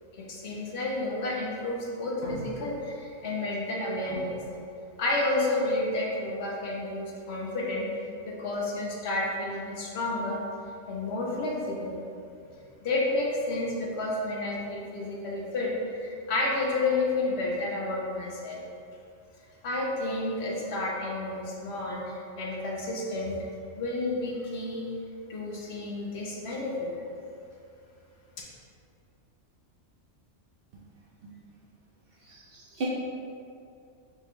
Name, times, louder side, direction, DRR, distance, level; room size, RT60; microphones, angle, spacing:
voice 1, 0.1-4.4 5.0-7.9 8.2-10.4 10.9-11.9 12.8-18.6 19.6-23.4 23.8-24.8 25.3-26.9, left 2 dB, 60° left, -3 dB, 0.9 m, -30 dB
voice 2, 32.2-32.9, right 3 dB, 60° right, -4 dB, 0.6 m, -36 dB
4.8 x 2.2 x 4.5 m, 2.4 s
omnidirectional pair, 1.3 m